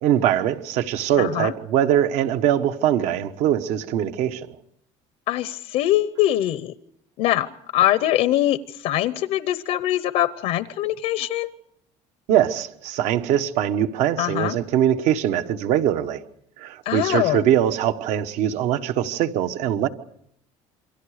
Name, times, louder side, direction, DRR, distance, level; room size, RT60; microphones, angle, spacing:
voice 1, 0.0-4.5 12.3-16.2 16.6-19.9, right 10 dB, 70° right, 1.2 m, -22 dB
voice 2, 1.2-1.5 5.3-6.7 7.2-11.5 14.2-14.6 16.8-17.4, left 13 dB, 65° left, 0.8 m, -23 dB
28.0 x 24.0 x 5.0 m
cardioid pair, 160°, 12 cm